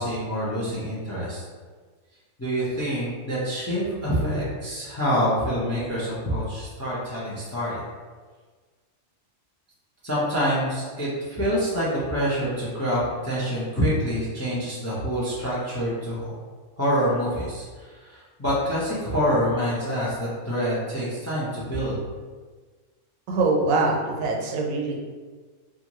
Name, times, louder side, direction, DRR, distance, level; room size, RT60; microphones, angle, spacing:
voice 1, 0.0-1.4 2.4-7.8 10.0-16.3 16.8-22.0, equal, 25° left, -8 dB, 0.3 m, -26 dB
voice 2, 23.3-25.0, right 3 dB, 80° right, 0 dB, 1.0 m, -23 dB
2.5 x 2.5 x 2.9 m, 1.5 s
omnidirectional pair, 1.4 m